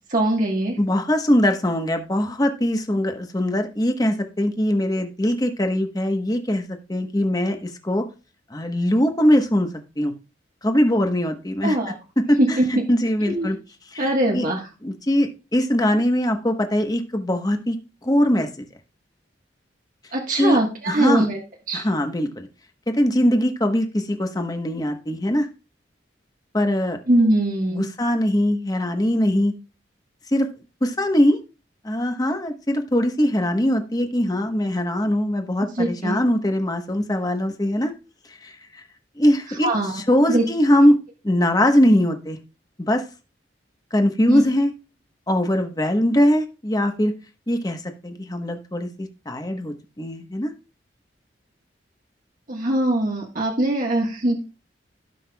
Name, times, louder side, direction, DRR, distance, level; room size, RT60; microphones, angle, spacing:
voice 1, 0.1-0.8 11.6-12.0 12.4-12.6 13.3-13.5 14.0-14.7 20.1-21.4 21.7-21.8 27.1-27.9 35.7-36.2 39.6-39.9 40.3-40.4 44.3-44.4 52.5-54.4, right 1 dB, 45° right, 0 dB, 1.5 m, -21 dB
voice 2, 0.8-8.0 8.5-9.7 10.0-10.1 10.6-13.6 13.9-14.5 14.8-17.8 18.0-18.6 20.4-20.6 20.9-21.3 21.7-22.5 22.9-25.5 26.5-27.0 27.7-29.5 30.3-30.5 30.8-31.4 31.8-37.9 38.4-38.5 39.2-39.7 39.9-41.0 41.2-42.4 42.8-43.0 43.9-44.7 45.3-47.1 47.5-50.5, left 1 dB, 20° left, 5 dB, 1.1 m, -21 dB
16.5 x 5.8 x 2.3 m, 0.33 s
head